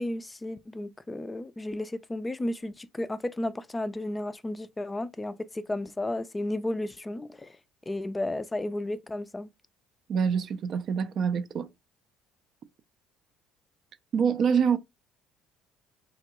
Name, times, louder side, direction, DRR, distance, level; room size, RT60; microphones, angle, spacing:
voice 1, 0.0-7.6 7.9-9.5, left 1 dB, 20° left, 0.3 m, -33 dB
voice 2, 10.1-11.7 14.1-14.8, right 6 dB, 55° right, 0.4 m, -25 dB
3.7 x 2.1 x 2.9 m
hypercardioid pair, 65°, 0 cm